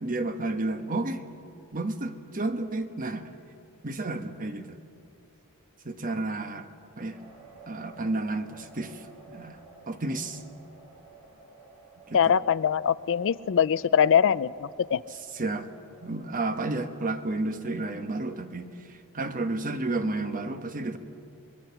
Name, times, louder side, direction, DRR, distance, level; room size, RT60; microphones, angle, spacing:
voice 1, 0.0-1.2 1.7-3.3 3.8-4.7 5.8-6.7 7.0-7.2 7.7-9.6 9.9-10.4 12.1-12.4 15.3-15.7 16.0-21.0, right 2 dB, 40° right, 8 dB, 1.1 m, -31 dB
sound 1, 7.1-18.7, right 3 dB, 70° right, 7.1 m, -54 dB
voice 2, 12.1-15.0, left 8 dB, 60° left, 17 dB, 0.4 m, -23 dB
24.5 x 22.0 x 5.8 m, 2.5 s
head